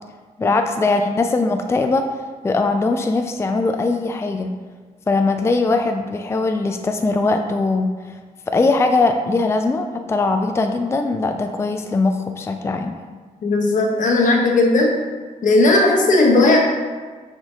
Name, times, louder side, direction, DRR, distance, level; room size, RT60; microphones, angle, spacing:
voice 1, 0.4-2.1 2.4-4.5 5.1-8.2 8.5-13.0, left 3 dB, 20° left, 5 dB, 0.4 m, -20 dB
voice 2, 13.4-14.9 15.4-16.6, left 2 dB, 70° left, 1 dB, 1.1 m, -16 dB
6.3 x 5.1 x 3.7 m, 1.4 s
wide cardioid pair, 120°, 13 cm